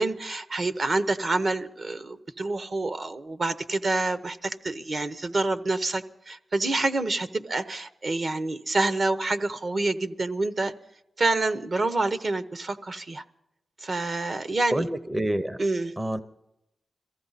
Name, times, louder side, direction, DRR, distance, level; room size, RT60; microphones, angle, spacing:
voice 1, 0.0-10.7 11.2-13.2 13.8-14.8 15.6-15.9, right 2 dB, 50° right, 11 dB, 0.9 m, -27 dB
voice 2, 14.7-15.6 16.0-16.2, right 1 dB, 15° right, 11 dB, 0.6 m, -27 dB
22.5 x 15.0 x 4.1 m, 0.83 s
wide cardioid pair, 95°, 0 cm